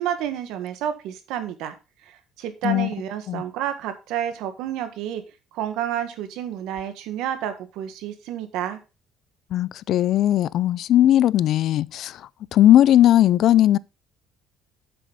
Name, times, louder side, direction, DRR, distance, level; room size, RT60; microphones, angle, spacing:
voice 1, 0.0-1.7 2.1-5.2 5.5-8.8, right 10 dB, 80° right, 1.7 m, -30 dB
voice 2, 9.5-12.2 12.5-13.8, left 12 dB, 55° left, 0.4 m, -18 dB
9.3 x 7.8 x 4.1 m
cardioid pair, 150°, 0 cm